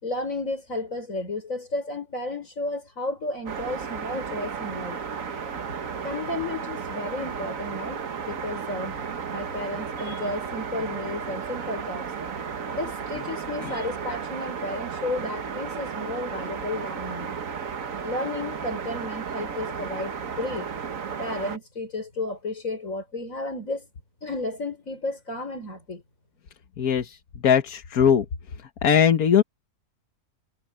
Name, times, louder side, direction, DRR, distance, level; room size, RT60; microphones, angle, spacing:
voice 1, 0.0-5.0 6.0-9.0 9.3-12.1 12.7-17.3 18.0-20.7 21.2-23.9 24.2-26.0, left 2 dB, 60° left, 5.1 m, -32 dB
sound 1, 3.5-21.6, right 6 dB, 65° right, 1.6 m, -34 dB
voice 2, 26.8-28.2 28.8-29.4, left 8 dB, 75° left, 1.6 m, -20 dB
omnidirectional pair, 1.6 m